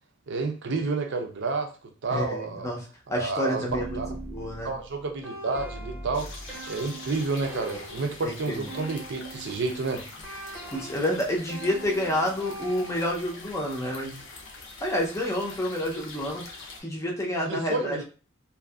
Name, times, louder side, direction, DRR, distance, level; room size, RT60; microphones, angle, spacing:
voice 1, 0.3-1.7 2.0-2.7 3.2-4.1 4.6-6.3 6.7-10.0 17.4-18.0, right 3 dB, 60° right, 4 dB, 0.5 m, -30 dB
voice 2, 2.1-2.8 3.1-4.0 4.2-4.7 8.2-8.7 10.7-14.2 14.8-16.4 16.8-18.0, left 1 dB, 15° left, -1 dB, 0.6 m, -29 dB
sound 1, 3.7-9.6 10.2-13.4, right 2 dB, 10° right, 0.9 m, -41 dB
sound 2, 6.1-16.8, left 3 dB, 65° left, 0.6 m, -44 dB
2.7 x 2.5 x 2.3 m, 0.35 s
head